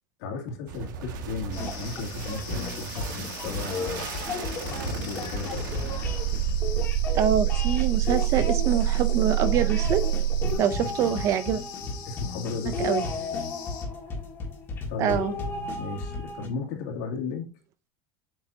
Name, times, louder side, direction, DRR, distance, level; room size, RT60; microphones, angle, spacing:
voice 1, 0.2-4.1 4.6-5.6 10.5-10.9 12.1-12.9 14.9-15.2 15.8-17.5, left 4 dB, 65° left, 2.4 m, -35 dB
sound 1, 0.7-10.6, right 12 dB, 85° right, 1.8 m, -28 dB
sound 2, 1.5-13.8, left 9 dB, 45° left, 2.3 m, -43 dB
sound 3, 1.6-16.5, left 3 dB, 20° left, 1.7 m, -34 dB
voice 2, 7.1-10.0 10.6-11.6 12.8-13.1 15.0-15.3, right 9 dB, 30° right, 0.5 m, -25 dB
7.9 x 5.9 x 2.7 m
supercardioid pair, 175°, 10 cm